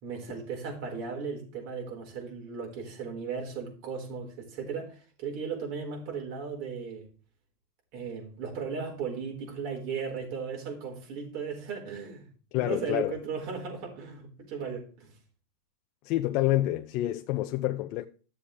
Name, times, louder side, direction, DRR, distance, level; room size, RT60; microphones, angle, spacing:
voice 1, 0.0-7.1 7.9-12.3 12.6-15.1, right 5 dB, 55° right, 4.9 m, -36 dB
voice 2, 12.5-13.2 16.0-18.0, left 15 dB, 55° left, 0.7 m, -28 dB
12.5 x 7.3 x 3.5 m
supercardioid pair, 120°, 0 cm